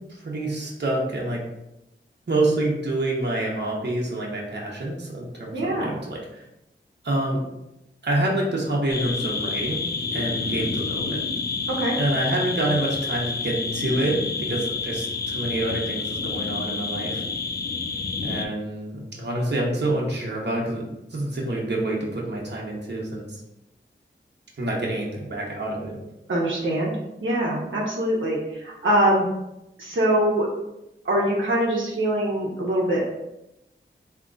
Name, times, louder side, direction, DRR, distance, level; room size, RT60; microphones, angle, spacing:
voice 1, 0.1-1.5 2.3-6.4 7.0-7.4 8.0-9.9 10.1-11.2 12.0-17.2 18.2-23.4 24.6-26.0, right 1 dB, 60° right, -3 dB, 1.0 m, -27 dB
voice 2, 5.5-6.0 11.7-12.0 26.3-26.9 27.2-29.2 29.8-30.5 31.0-33.2, right 1 dB, 80° right, -4 dB, 1.0 m, -23 dB
sound 1, 8.9-18.5, left 4 dB, 50° left, 0.5 m, -29 dB
3.6 x 3.0 x 3.8 m, 0.89 s
wide cardioid pair, 65°, 20 cm